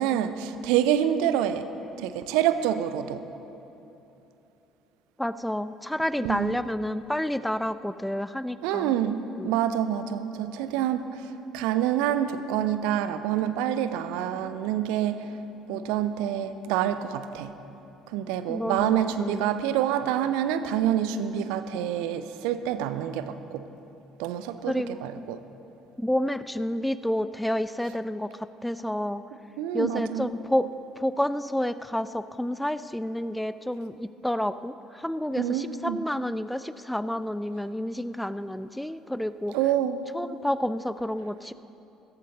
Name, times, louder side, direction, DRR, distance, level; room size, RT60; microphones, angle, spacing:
voice 1, 0.0-1.7 2.0-3.2 6.2-6.6 8.6-15.2 15.7-17.5 18.1-23.6 24.2-25.4 29.6-30.3 35.4-36.0 39.5-40.1, right 10 dB, 65° right, 11 dB, 0.5 m, -27 dB
voice 2, 5.2-8.9 9.4-9.5 18.5-19.5 24.7-25.4 26.0-29.2 29.7-30.7 31.0-39.5 40.1-41.5, left 1 dB, 5° left, 14 dB, 0.4 m, -30 dB
16.5 x 14.0 x 4.0 m, 2.9 s
figure-of-eight pair, 50°, 0 cm